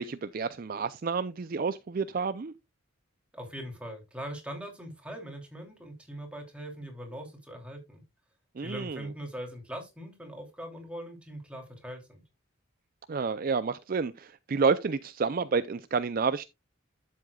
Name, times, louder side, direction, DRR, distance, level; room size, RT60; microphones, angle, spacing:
voice 1, 0.0-2.5 8.6-9.0 13.1-16.5, right 5 dB, 40° right, 0.4 m, -29 dB
voice 2, 3.3-8.0 8.6-12.2, equal, 5° right, 2.8 m, -41 dB
11.5 x 7.7 x 2.3 m
head